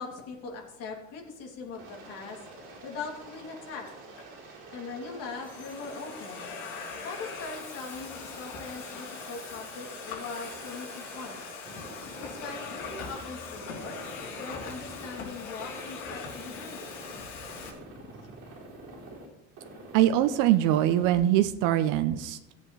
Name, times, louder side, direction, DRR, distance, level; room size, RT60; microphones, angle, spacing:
voice 1, 0.0-2.4 2.8-3.9 4.4-6.5 7.0-11.4 12.2-14.0 14.4-16.9, left 4 dB, 55° left, 0 dB, 2.9 m, -41 dB
Aircraft, 1.7-13.2 13.5-15.3 15.6-17.2 17.5-19.3 19.6-21.2, right 2 dB, 50° right, 3.6 m, -47 dB
Domestic sounds home sounds, 3.9-4.3 5.0-17.7, left 5 dB, 85° left, 3.4 m, -41 dB
voice 2, 19.9-22.5, right 12 dB, 80° right, 10 dB, 0.7 m, -23 dB
16.5 x 8.3 x 3.3 m, 0.87 s
cardioid pair, 160°, 30 cm